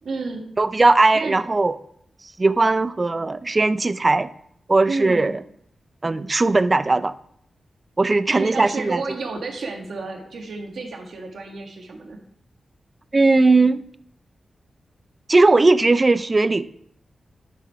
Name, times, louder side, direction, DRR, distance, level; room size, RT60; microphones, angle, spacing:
voice 1, 0.0-0.5 1.1-1.4 4.8-5.3 8.3-12.2, right 3 dB, 75° right, 3 dB, 1.4 m, -31 dB
voice 2, 0.6-1.8 2.4-4.3 4.7-5.4 6.0-7.1 8.0-9.0 13.1-13.8 15.3-16.7, right 3 dB, 30° right, 15 dB, 0.3 m, -18 dB
7.6 x 6.5 x 4.5 m, 0.69 s
wide cardioid pair, 120°, 0 cm